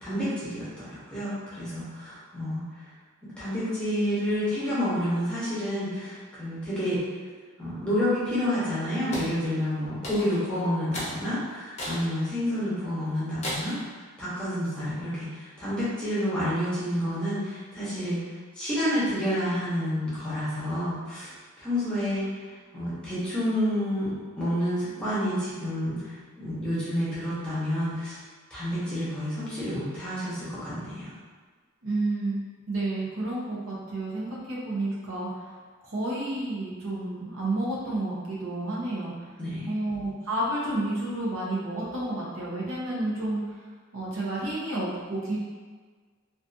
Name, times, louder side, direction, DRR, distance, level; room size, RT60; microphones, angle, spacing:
voice 1, 0.0-2.7 3.4-7.0 7.6-13.8 14.2-18.2 18.6-22.4 22.7-28.2 28.5-31.1 39.4-39.7, equal, 5° left, -11 dB, 0.8 m, -29 dB
sound 1, 9.1-9.3 10.0-10.5 10.9-11.2 11.8-12.0 12.5-12.6 13.4-13.8, equal, 35° left, 0.6 m, -34 dB
voice 2, 31.8-35.3 35.8-39.3 39.6-43.4 43.9-45.4, right 2 dB, 75° right, -7 dB, 0.7 m, -30 dB
2.6 x 2.3 x 2.5 m, 1.5 s
head